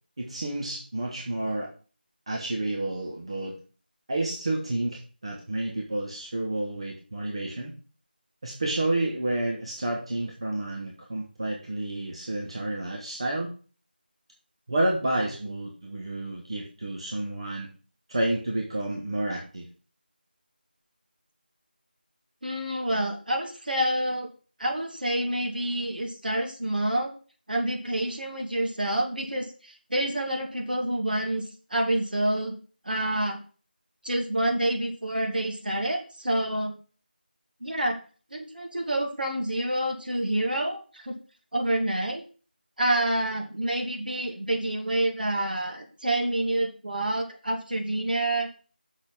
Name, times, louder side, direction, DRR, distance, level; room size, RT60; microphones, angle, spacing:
voice 1, 0.2-1.7 2.3-3.6 4.1-7.7 8.4-13.5 14.7-17.7 18.1-19.7, right 1 dB, 35° right, -1 dB, 1.4 m, -30 dB
voice 2, 22.4-24.3 24.6-27.1 27.5-32.5 32.8-33.4 34.0-36.7 37.6-38.0 38.3-41.2 41.5-42.2 42.8-48.5, right 1 dB, 60° right, 1 dB, 2.5 m, -28 dB
6.4 x 5.7 x 6.1 m, 0.38 s
figure-of-eight pair, 170°, 6 cm